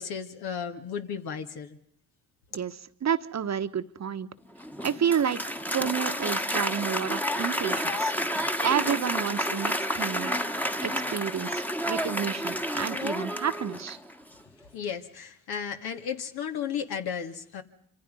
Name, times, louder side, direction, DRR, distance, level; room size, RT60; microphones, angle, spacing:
voice 1, 0.0-1.8 14.7-17.6, left 7 dB, 70° left, 6 dB, 2.2 m, -34 dB
voice 2, 2.5-4.3 4.8-5.4 5.7-10.4 10.8-14.0, right 8 dB, 45° right, 11 dB, 1.2 m, -30 dB
Applause, 4.6-14.1, equal, 5° left, 1.4 m, -30 dB
25.5 x 25.5 x 5.5 m, 0.65 s
supercardioid pair, 60°, 39 cm